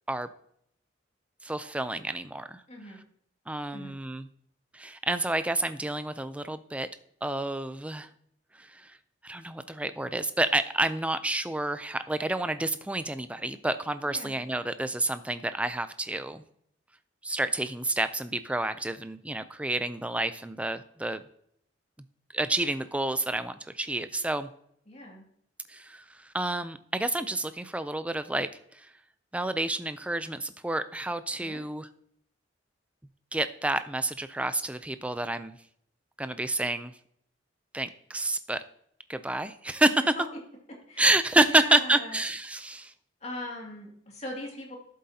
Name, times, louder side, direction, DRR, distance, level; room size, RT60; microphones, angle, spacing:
voice 1, 1.4-2.6 3.5-4.2 4.7-6.9 7.2-8.1 8.5-9.0 9.2-16.4 17.2-21.2 22.3-24.5 25.7-28.9 29.3-31.9 33.3-35.6 36.2-37.0 37.7-38.6 39.1-40.0 41.0-42.9, right 2 dB, 5° right, 12 dB, 0.3 m, -29 dB
voice 2, 2.7-3.0 3.7-4.0 14.0-14.3 24.9-25.2 31.4-31.6 40.2-40.3 40.7-41.0 41.4-42.2 43.2-44.8, left 1 dB, 35° left, -1 dB, 2.3 m, -40 dB
12.5 x 7.6 x 2.8 m, 0.69 s
head